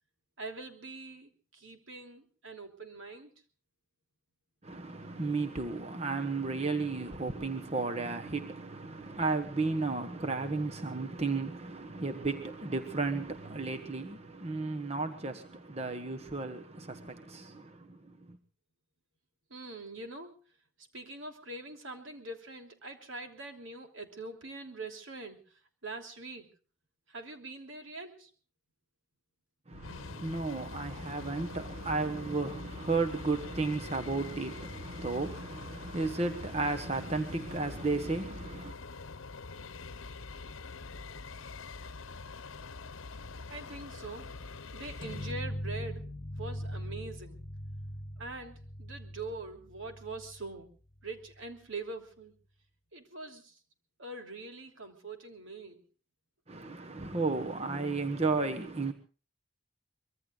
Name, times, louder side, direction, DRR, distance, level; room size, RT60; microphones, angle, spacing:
voice 1, 0.4-3.3 19.5-20.4 20.9-25.4 25.8-26.5 27.1-28.3 43.5-44.3 44.7-46.1 46.4-47.4 48.2-50.7 51.0-52.3 52.9-53.6 54.0-55.8, right 2 dB, 75° right, 3.1 m, -43 dB
voice 2, 4.6-18.4 29.7-38.7 56.5-58.9, right 3 dB, 30° right, 1.3 m, -34 dB
sound 1, 29.7-45.3, left 3 dB, 80° left, 0.9 m, -44 dB
sound 2, 45.0-50.5, equal, 25° left, 1.9 m, -40 dB
24.5 x 22.5 x 2.4 m
head